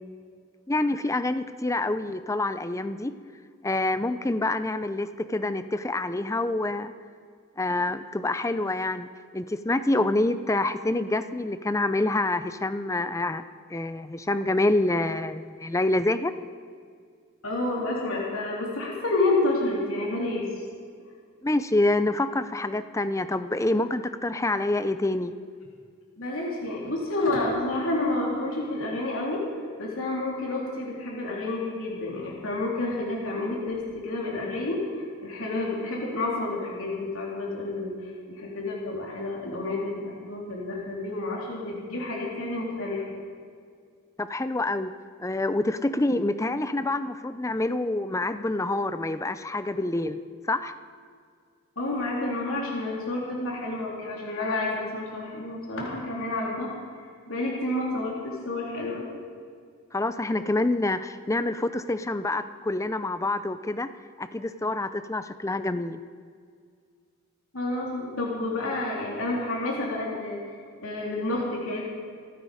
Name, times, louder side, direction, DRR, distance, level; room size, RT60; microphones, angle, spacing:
voice 1, 0.7-3.1 3.6-6.9 7.6-9.1 9.3-13.4 13.7-16.3 21.4-25.3 44.2-44.9 45.2-50.2 50.5-50.7 59.9-63.9 64.2-66.0, left 2 dB, 15° left, 12 dB, 0.5 m, -27 dB
voice 2, 17.4-20.4 26.2-29.4 29.8-43.2 51.7-59.1 67.5-70.6 70.8-71.8, left 2 dB, 70° left, -3 dB, 3.5 m, -29 dB
27.0 x 9.3 x 5.0 m, 2.1 s
head